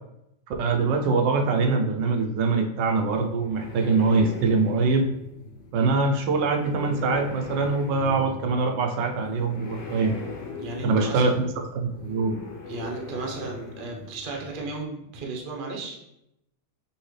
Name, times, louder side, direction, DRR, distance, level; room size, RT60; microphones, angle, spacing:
voice 1, 0.6-5.1 5.7-10.2 10.8-11.3 11.7-12.4, right 4 dB, 85° right, 3 dB, 1.3 m, -23 dB
sound 1, 3.1-14.8, left 4 dB, 75° left, 1.4 m, -40 dB
voice 2, 10.6-11.3 12.7-16.0, right 3 dB, 45° right, 0 dB, 0.7 m, -35 dB
5.5 x 2.9 x 3.2 m, 0.84 s
omnidirectional pair, 1.9 m